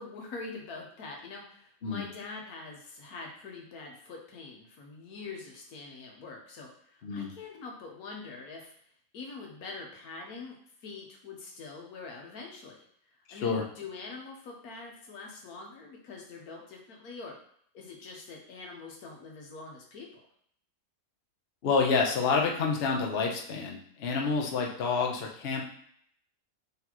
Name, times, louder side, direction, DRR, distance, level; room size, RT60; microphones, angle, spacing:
voice 1, 0.0-8.7 9.1-10.6 10.8-12.8 13.3-17.3 17.7-20.1, left 4 dB, 85° left, 0 dB, 1.4 m, -44 dB
voice 2, 13.3-13.6 21.6-25.6, left 4 dB, 50° left, 0 dB, 0.8 m, -28 dB
4.1 x 3.4 x 2.9 m, 0.65 s
omnidirectional pair, 1.5 m